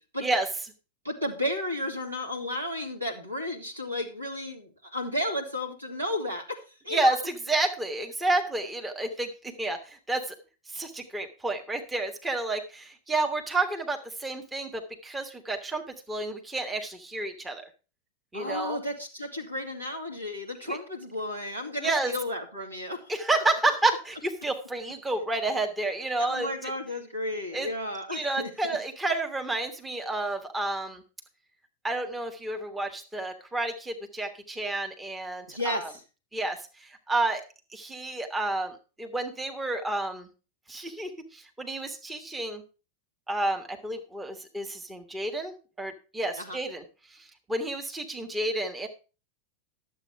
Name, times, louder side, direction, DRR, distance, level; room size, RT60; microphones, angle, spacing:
voice 1, 1.0-7.2 18.3-23.1 26.2-28.5 35.5-36.0 46.4-46.6, left 1 dB, 80° right, 2 dB, 2.5 m, -33 dB
voice 2, 6.9-9.3 9.6-10.3 10.7-15.8 16.1-17.6 18.3-18.8 20.7-20.8 21.8-22.1 23.1-26.7 27.5-27.7 28.1-31.0 31.8-35.9 36.3-37.4 37.7-40.3 40.7-42.6 43.3-46.8 47.2-48.9, right 2 dB, 10° right, 4 dB, 1.5 m, -30 dB
11.5 x 7.8 x 4.7 m, 0.34 s
figure-of-eight pair, 90°, 0 cm